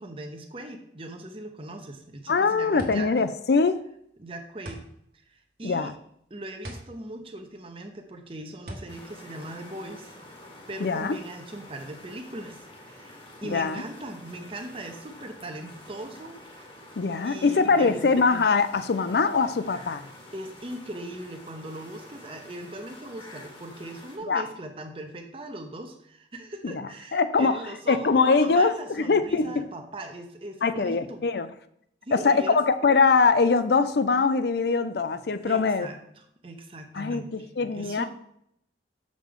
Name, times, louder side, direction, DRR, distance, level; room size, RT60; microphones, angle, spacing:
voice 1, 0.0-3.1 4.2-4.8 5.3-5.9 6.3-10.1 10.7-16.7 17.2-18.1 20.3-31.2 32.0-32.6 35.5-37.4 37.7-38.1, right 1 dB, 30° right, 4 dB, 0.8 m, -40 dB
sound 1, 2.1-10.3, equal, 50° right, 1.2 m, -44 dB
voice 2, 2.3-3.8 5.6-5.9 10.8-11.2 13.4-13.8 17.0-20.1 24.3-24.4 26.6-27.6 27.9-29.5 30.6-31.5 32.1-35.9 36.9-38.1, left 4 dB, 60° left, 12 dB, 0.5 m, -23 dB
sound 2, 8.9-24.2, left 1 dB, 30° left, 1.3 m, -48 dB
7.2 x 5.1 x 3.7 m, 0.72 s
head